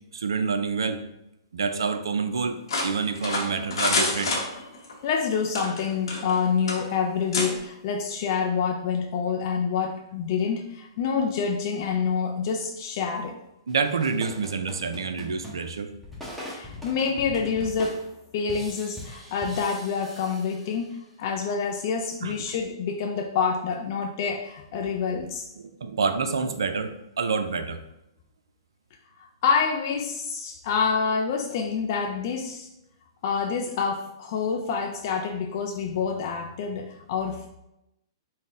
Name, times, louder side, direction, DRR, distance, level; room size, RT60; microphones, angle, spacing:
voice 1, 0.1-1.0 1.5-2.6 2.8-4.4 13.7-15.9 22.2-22.3 25.6-27.8, right 5 dB, 80° right, 9 dB, 0.4 m, -27 dB
sound 1, 2.7-4.9 5.5-6.4 6.7-6.8 7.3-7.5, left 2 dB, 75° left, 0.9 m, -27 dB
voice 2, 5.0-13.4 16.4-18.1 18.3-25.4 29.2-32.7 33.2-37.5, left 6 dB, 50° left, 2 dB, 0.3 m, -27 dB
sound 2, 13.7-21.1, left 1 dB, ahead, 0.8 m, -41 dB
3.9 x 2.1 x 3.7 m, 0.87 s
hypercardioid pair, 125°, 2 cm